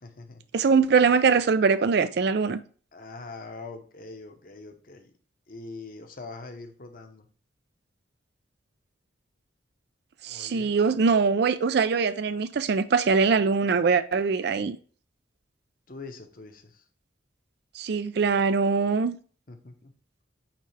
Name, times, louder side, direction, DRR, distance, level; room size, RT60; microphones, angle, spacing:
voice 1, 0.0-0.4 2.9-5.1 5.5-7.3 10.3-10.8 15.9-16.8 19.5-19.9, left 3 dB, 45° left, 0.9 m, -43 dB
voice 2, 0.5-2.6 10.2-14.8 17.7-19.2, right 5 dB, 55° right, 0.4 m, -22 dB
8.8 x 3.3 x 3.3 m
head